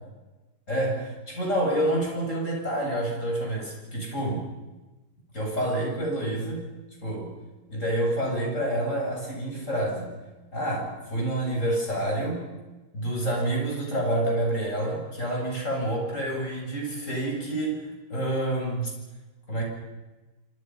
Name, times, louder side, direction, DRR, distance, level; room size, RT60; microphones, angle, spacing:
voice 1, 0.7-4.4 5.3-6.7 7.0-7.3 7.7-10.1 10.5-12.5 12.9-18.9 19.5-19.6, right 1 dB, 35° left, 0 dB, 7.8 m, -28 dB
27.5 x 26.0 x 5.8 m, 1.1 s
omnidirectional pair, 2.3 m